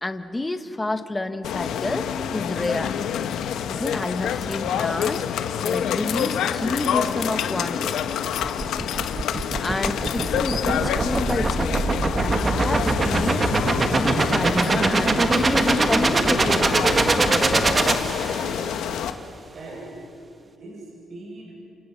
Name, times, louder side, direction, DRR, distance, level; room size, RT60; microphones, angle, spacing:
voice 1, 0.0-2.9 3.7-5.2 5.6-8.0 9.6-11.8 12.2-13.5 13.9-17.6, left 2 dB, 15° left, 8 dB, 1.5 m, -29 dB
sound 1, 1.4-19.1, left 8 dB, 80° left, 1.3 m, -27 dB
sound 2, 8.4-18.7, right 3 dB, 30° right, 1.5 m, -22 dB
voice 2, 18.3-18.9 19.5-20.0 20.4-21.5, right 2 dB, 60° right, -3 dB, 7.8 m, -41 dB
29.5 x 28.0 x 5.9 m, 2.7 s
cardioid pair, 90°, 0 cm